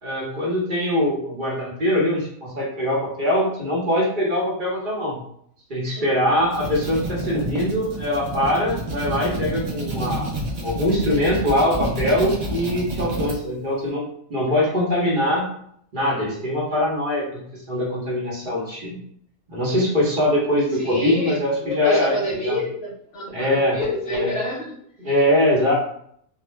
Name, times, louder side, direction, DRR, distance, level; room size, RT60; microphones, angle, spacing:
voice 1, 0.0-5.2 5.7-14.0 14.3-15.5 15.9-19.0 19.5-22.2 22.4-22.6 23.3-23.8 24.1-24.3 25.0-25.7, left 1 dB, 45° right, -4 dB, 0.8 m, -22 dB
sound 1, 6.3-13.3, right 1 dB, 75° right, 0.3 m, -29 dB
voice 2, 20.7-24.7, left 1 dB, 55° left, -3 dB, 0.8 m, -27 dB
2.6 x 2.0 x 3.1 m, 0.66 s
omnidirectional pair, 1.5 m